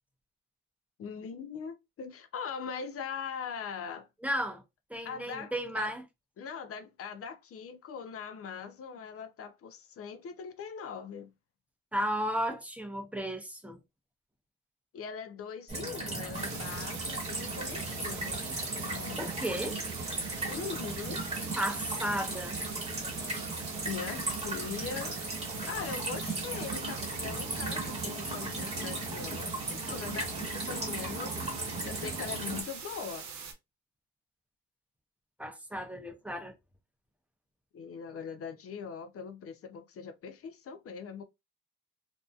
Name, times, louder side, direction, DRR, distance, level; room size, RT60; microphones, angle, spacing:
voice 1, 1.0-4.1 5.0-5.9 6.4-11.3 14.9-18.4 18.7-19.6 20.5-21.6 23.8-25.2 25.7-33.3 37.7-41.2, left 6 dB, 50° left, 0.6 m, -41 dB
voice 2, 4.2-4.6 4.9-6.0 11.9-13.8 19.2-19.8 21.6-22.6 35.4-36.5, equal, 5° right, 0.7 m, -34 dB
sound 1, 15.7-32.6, right 2 dB, 20° right, 1.3 m, -36 dB
sound 2, 16.3-33.5, right 6 dB, 65° right, 0.8 m, -43 dB
2.7 x 2.3 x 2.3 m
cardioid pair, 90°, 30 cm